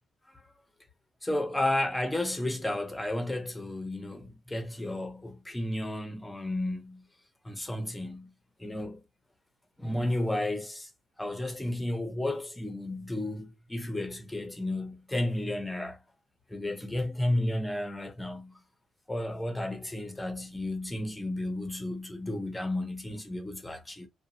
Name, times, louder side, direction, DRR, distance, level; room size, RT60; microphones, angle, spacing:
voice 1, 1.2-7.0 7.4-8.3 8.6-9.0 9.8-10.9 11.2-16.0 16.5-18.5 19.1-24.1, left 1 dB, 10° left, 0.8 m, -32 dB
2.9 x 2.2 x 2.6 m
cardioid pair, 90°, 0 cm